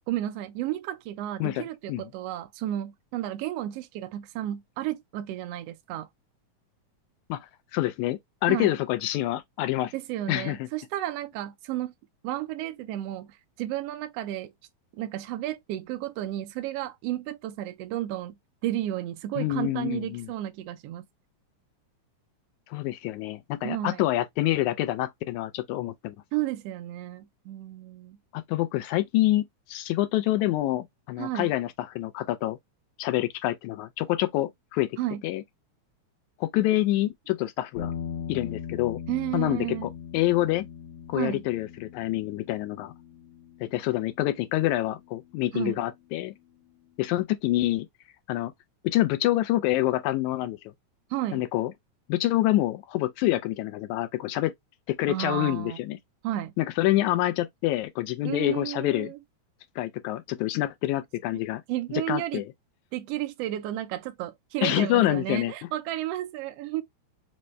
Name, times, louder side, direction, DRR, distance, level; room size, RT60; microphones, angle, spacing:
voice 1, 0.1-6.1 8.5-8.7 9.9-11.9 12.2-14.5 14.9-18.3 18.6-21.0 23.6-24.0 26.3-28.2 31.2-31.5 35.0-35.2 39.1-39.9 41.1-41.4 45.5-45.8 51.1-51.4 55.1-55.8 56.2-56.5 58.2-59.2 61.7-62.4 62.9-66.8, right 13 dB, 85° right, 1.4 m, -32 dB
voice 2, 7.3-9.9 10.3-10.7 19.4-20.3 22.7-26.2 28.3-32.6 33.0-35.0 35.2-35.4 36.4-37.9 38.3-39.0 39.3-40.7 41.1-42.9 43.6-46.3 47.0-47.9 48.3-48.5 48.8-50.7 51.3-51.7 52.1-54.5 54.9-56.0 56.6-59.1 59.8-61.6 61.9-62.5 64.6-65.5, left 15 dB, 85° left, 1.9 m, -27 dB
sound 1, 37.8-46.1, left 7 dB, 65° left, 1.8 m, -40 dB
5.1 x 2.2 x 3.0 m
omnidirectional pair, 3.3 m